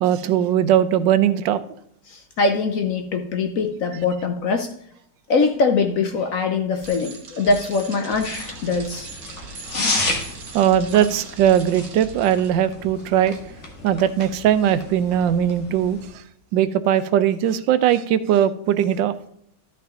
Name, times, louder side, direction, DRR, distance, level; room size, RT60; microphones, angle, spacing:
voice 1, 0.0-1.6 10.5-13.4 13.8-16.0 16.5-19.1, right 10 dB, 85° right, 13 dB, 1.4 m, -19 dB
voice 2, 2.1-4.7 5.3-9.1, left 4 dB, 60° left, 6 dB, 1.0 m, -22 dB
Bicycle, 6.8-12.5, right 4 dB, 55° right, 1.6 m, -40 dB
sound 1, 8.2-16.1, left 2 dB, 40° left, 1.7 m, -32 dB
12.5 x 5.6 x 3.7 m, 0.70 s
omnidirectional pair, 2.0 m